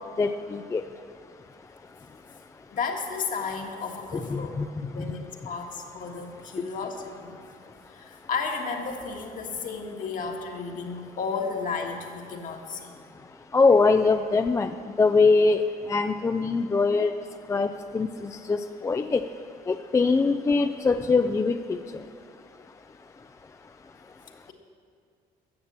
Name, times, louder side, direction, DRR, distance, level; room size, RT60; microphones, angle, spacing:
voice 1, 0.2-0.8 4.3-4.7 13.5-14.7 15.0-15.6 15.9-17.1 17.5-17.7 17.9-18.1 18.5-19.2 19.7-21.8, left 4 dB, 20° left, 9 dB, 0.3 m, -22 dB
voice 2, 2.7-4.6 4.9-7.4 7.9-13.0, left 5 dB, 50° left, 2 dB, 1.6 m, -33 dB
13.5 x 7.3 x 7.4 m, 2.4 s
cardioid pair, 110°, 17 cm